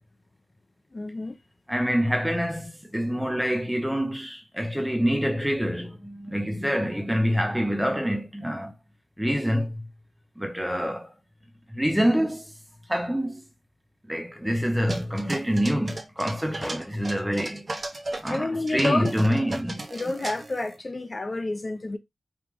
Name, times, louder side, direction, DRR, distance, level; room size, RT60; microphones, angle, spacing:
voice 1, 0.9-1.4 18.3-19.1 19.9-22.0, left 2 dB, 30° left, 0.7 m, -29 dB
voice 2, 1.7-8.7 9.2-9.8 10.4-11.1 11.7-12.5 12.9-13.4 14.1-17.7 18.2-19.8, equal, 5° right, 0.8 m, -26 dB
sound 1, 14.9-18.4 18.7-20.7, right 2 dB, 35° right, 0.7 m, -35 dB
5.0 x 2.3 x 3.7 m
wide cardioid pair, 95°, 0 cm